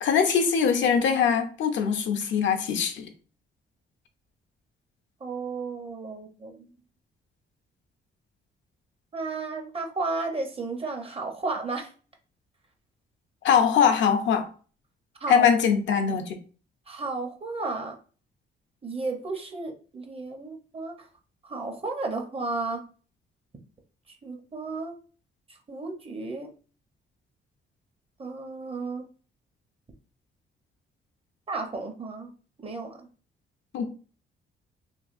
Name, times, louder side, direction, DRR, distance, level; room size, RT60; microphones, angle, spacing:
voice 1, 0.0-3.1 13.4-14.5 15.3-16.4 33.7-33.9, left 7 dB, 70° left, 0.6 m, -22 dB
voice 2, 5.2-6.7 9.1-11.9 15.2-15.5 16.9-18.0 18.8-21.1 21.4-22.8 24.2-25.0 25.7-26.5 28.2-29.0 31.5-32.3 32.6-33.1, right 3 dB, 30° right, 0.8 m, -33 dB
3.2 x 2.3 x 2.5 m
cardioid pair, 90°, 20 cm